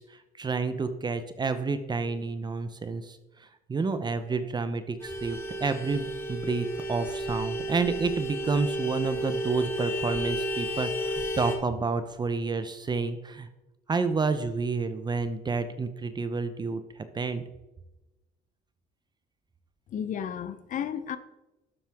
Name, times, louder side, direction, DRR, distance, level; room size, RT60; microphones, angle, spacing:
voice 1, 0.0-13.5 13.9-17.4, right 4 dB, 25° right, 10 dB, 0.7 m, -30 dB
Vehicle horn car horn honking, 5.0-11.6, equal, 15° left, 1.8 m, -32 dB
voice 2, 19.9-21.2, left 8 dB, 50° left, 13 dB, 0.8 m, -33 dB
12.0 x 7.3 x 3.6 m, 1.0 s
cardioid pair, 110°, 17 cm